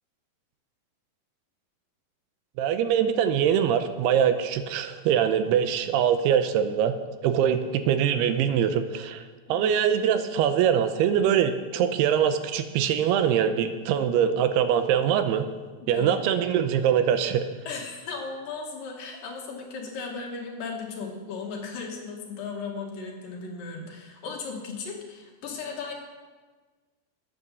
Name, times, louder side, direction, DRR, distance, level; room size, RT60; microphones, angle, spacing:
voice 1, 2.6-6.9 7.2-9.2 9.5-15.5 15.9-17.5, right 8 dB, 85° right, 9 dB, 2.7 m, -23 dB
voice 2, 15.8-16.2 17.7-25.9, left 4 dB, 60° left, 0 dB, 3.1 m, -36 dB
12.5 x 8.8 x 6.8 m, 1.4 s
omnidirectional pair, 4.7 m